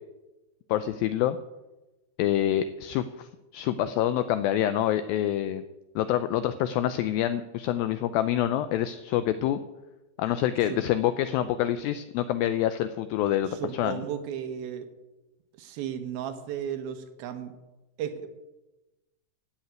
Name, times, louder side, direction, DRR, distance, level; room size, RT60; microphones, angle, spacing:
voice 1, 0.7-1.4 2.2-5.6 6.0-9.6 10.2-14.0, left 12 dB, 85° left, 12 dB, 2.0 m, -26 dB
voice 2, 13.4-14.9 15.6-17.5 18.0-18.3, right 9 dB, 75° right, 9 dB, 2.7 m, -34 dB
16.0 x 5.8 x 9.1 m, 1.1 s
omnidirectional pair, 4.7 m